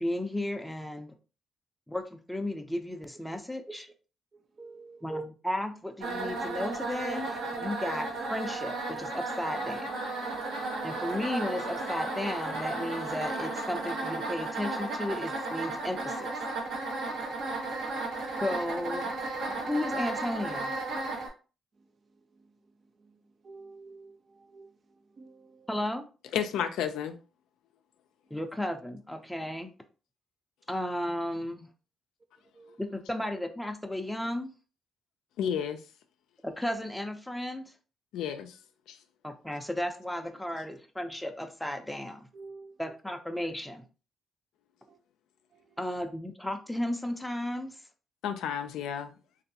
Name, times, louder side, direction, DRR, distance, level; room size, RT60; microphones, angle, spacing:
voice 1, 0.0-1.2 1.9-3.9 5.0-10.0 10.8-16.4 18.4-19.3 19.7-20.8 25.7-26.0 28.3-29.7 30.7-31.7 32.8-34.5 36.4-37.6 39.2-42.3 42.8-43.8 45.8-47.8, left 1 dB, 5° left, 0.5 m, -34 dB
voice 2, 4.6-5.1 21.8-21.9 22.3-22.6 23.0-25.7 32.5-32.8 42.3-42.8 44.9-45.0 45.5-45.8, right 3 dB, 45° right, 0.5 m, -52 dB
sound 1, 6.0-21.3, right 2 dB, 80° right, 1.1 m, -34 dB
voice 3, 26.3-27.2 35.4-35.8 38.1-38.6 38.9-39.0 48.2-49.1, left 8 dB, 85° left, 0.4 m, -31 dB
3.0 x 2.6 x 2.7 m
cardioid pair, 90°, 0 cm